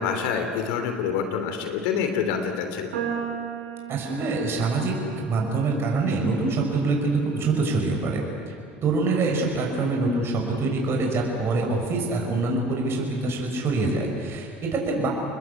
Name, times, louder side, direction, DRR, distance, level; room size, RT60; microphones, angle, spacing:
voice 1, 0.0-3.0, left 6 dB, 70° left, 6 dB, 3.2 m, -27 dB
sound 1, 2.9-9.3, right 7 dB, 85° right, 7.0 m, -38 dB
voice 2, 3.9-5.0 5.2-8.2 8.8-15.1, right 3 dB, 45° right, 0 dB, 6.4 m, -25 dB
28.5 x 21.0 x 8.6 m, 2.3 s
hypercardioid pair, 80°, 6 cm